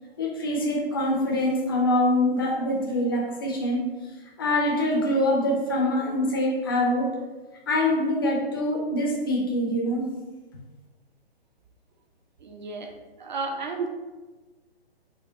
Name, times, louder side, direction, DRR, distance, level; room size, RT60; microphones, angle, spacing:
voice 1, 0.2-3.9 4.4-7.2 7.7-10.1, left 1 dB, 25° left, -2 dB, 0.4 m, -24 dB
voice 2, 12.4-13.9, right 4 dB, 50° right, 4 dB, 0.5 m, -33 dB
4.3 x 2.1 x 2.7 m, 1.2 s
figure-of-eight pair, 130°, 31 cm